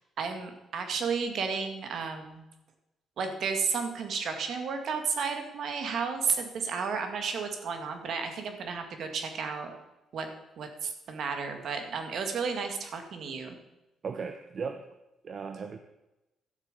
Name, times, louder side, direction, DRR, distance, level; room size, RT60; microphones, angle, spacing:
voice 1, 0.2-2.4 3.2-9.7 10.1-10.3 10.6-13.6, right 5 dB, 65° right, 6 dB, 2.0 m, -32 dB
voice 2, 14.0-14.9 15.2-15.8, right 5 dB, 50° right, 8 dB, 0.8 m, -36 dB
12.0 x 7.8 x 6.7 m, 0.97 s
cardioid pair, 90°, 0 cm